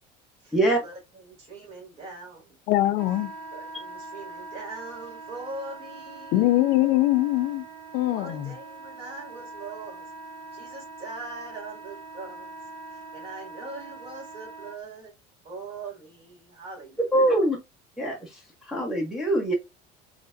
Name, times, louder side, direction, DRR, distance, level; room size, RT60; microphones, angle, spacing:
voice 1, 0.4-2.6 3.5-6.5 8.1-10.1 10.5-12.5 12.9-15.1 15.4-17.0 17.3-17.4, right 3 dB, 35° right, 2.2 m, -41 dB
voice 2, 2.7-3.3 6.3-7.7 7.9-8.5, left 16 dB, 55° left, 0.5 m, -22 dB
Wind instrument woodwind instrument, 3.0-14.8, right 3 dB, 85° right, 1.7 m, -43 dB
voice 3, 17.1-17.6 18.0-19.5, right 1 dB, 5° right, 0.9 m, -24 dB
3.9 x 3.3 x 2.5 m
cardioid pair, 175°, 18 cm